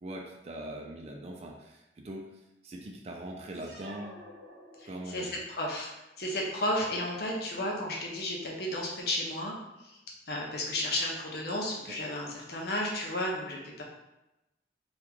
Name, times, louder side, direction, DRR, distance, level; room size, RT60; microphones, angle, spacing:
voice 1, 0.0-4.2 4.9-5.4 11.9-12.0, right 1 dB, 35° right, 0 dB, 0.4 m, -42 dB
sound 1, 3.5-5.4, equal, 90° right, 0.9 m, -50 dB
voice 2, 4.8-5.9 6.2-9.6 9.8-10.0 10.3-13.8, left 1 dB, 60° left, -2 dB, 0.7 m, -33 dB
2.9 x 2.4 x 3.6 m, 0.95 s
head